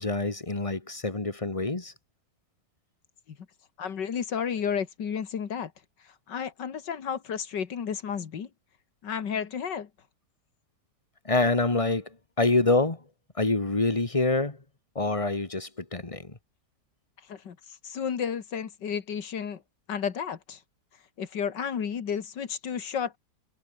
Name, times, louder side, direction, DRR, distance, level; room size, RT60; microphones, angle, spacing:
voice 1, 0.0-1.9 11.3-12.1 12.4-13.0 13.4-14.6 15.0-16.4, left 2 dB, 20° left, 2.0 m, -26 dB
voice 2, 3.8-5.7 6.3-8.5 9.0-9.9 17.3-17.6 17.8-19.6 19.9-20.6 21.2-23.1, left 7 dB, 90° left, 2.3 m, -32 dB
omnidirectional pair, 1.8 m